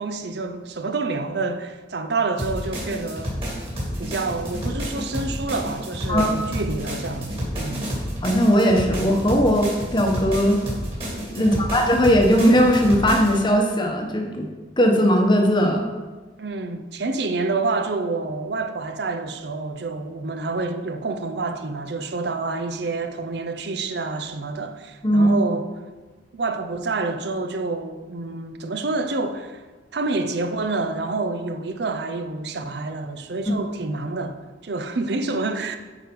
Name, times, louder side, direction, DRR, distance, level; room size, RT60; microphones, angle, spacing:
voice 1, 0.0-3.3 4.0-7.9 11.3-11.7 16.4-25.7 26.3-29.6 29.9-34.4 34.6-35.8, right 3 dB, 60° right, 0.6 m, -28 dB
sound 1, 2.4-13.4, equal, 30° right, 2.6 m, -30 dB
voice 2, 8.2-10.6 11.3-14.5 14.8-15.9 25.0-25.3 33.5-33.6, equal, 25° left, 1.0 m, -18 dB
8.9 x 4.7 x 5.2 m
head